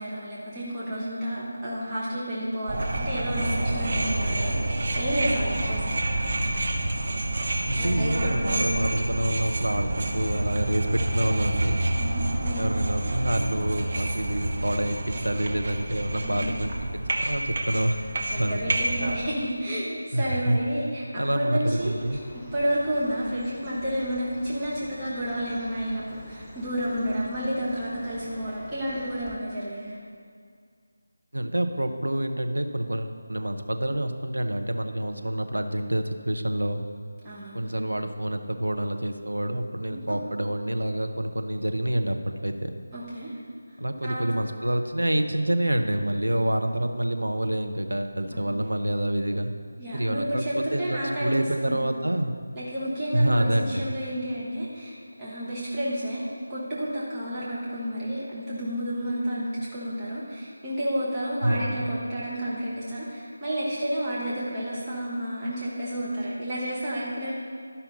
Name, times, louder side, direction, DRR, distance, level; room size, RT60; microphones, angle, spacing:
voice 1, 0.0-6.0 7.7-9.1 12.0-12.6 16.2-16.5 18.3-22.0 22.3-30.0 37.2-37.7 39.9-40.2 42.9-43.4 44.0-44.4 48.3-48.5 49.8-51.3 51.6-51.8 52.5-56.2 56.5-67.3, equal, 20° right, -8 dB, 1.4 m, -31 dB
sound 1, 2.7-19.2, right 1 dB, 45° right, 1.0 m, -28 dB
voice 2, 7.7-11.8 12.6-18.0 18.3-18.7 20.1-20.6 21.1-22.2 31.3-36.9 37.5-42.7 43.8-49.5 49.9-52.3 53.1-53.9 61.4-62.0, right 1 dB, 85° right, 6 dB, 0.8 m, -27 dB
Chirp tweet, 21.6-29.4, left 1 dB, 10° left, 0.8 m, -46 dB
12.0 x 5.7 x 4.1 m, 2.1 s
figure-of-eight pair, 165°, 0 cm